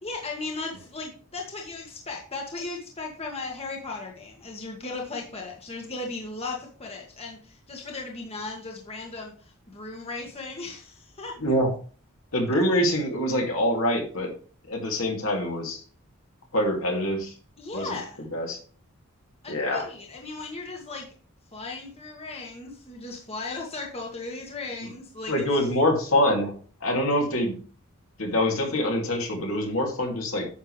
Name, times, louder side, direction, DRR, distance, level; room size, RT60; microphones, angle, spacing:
voice 1, 0.0-11.4 17.6-18.2 19.4-21.1 21.5-25.7, left 3 dB, 30° left, 0 dB, 1.6 m, -36 dB
voice 2, 12.3-14.3 14.7-15.8 16.5-17.3 17.7-18.0 18.3-18.6 19.5-19.9 25.3-26.5 26.8-27.6 28.2-30.5, left 1 dB, 65° left, 1 dB, 2.7 m, -25 dB
10.0 x 6.7 x 3.3 m, 0.41 s
head